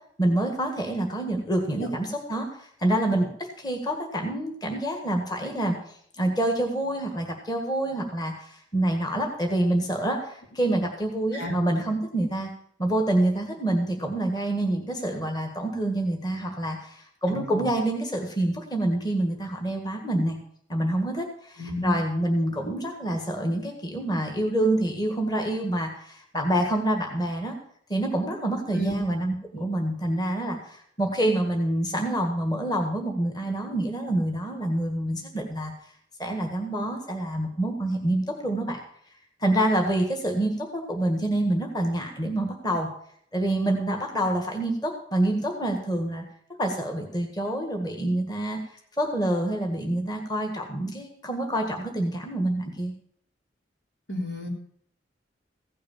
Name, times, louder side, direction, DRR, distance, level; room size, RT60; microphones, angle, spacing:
voice 1, 0.2-5.8 6.2-12.5 12.8-20.4 20.7-27.5 27.9-35.7 36.2-38.8 39.4-42.9 43.3-46.2 46.6-48.6 49.0-52.9, right 1 dB, 20° left, 3 dB, 1.8 m, -27 dB
voice 2, 17.3-17.7 21.6-22.0 22.7-22.8 28.7-28.9 29.6-29.7 54.1-54.5, equal, 80° left, 0 dB, 3.6 m, -31 dB
15.5 x 6.6 x 7.1 m, 0.64 s
head